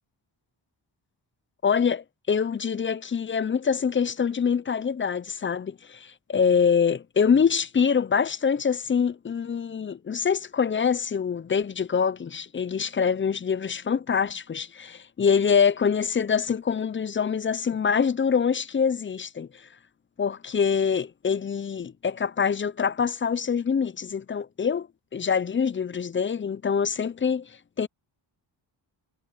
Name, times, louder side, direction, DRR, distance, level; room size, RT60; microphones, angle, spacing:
voice 1, 1.6-19.5 20.2-24.9 25.1-27.5 27.8-27.9, left 6 dB, 30° left, 0.4 m, -25 dB
wide cardioid pair, 95°, 45 cm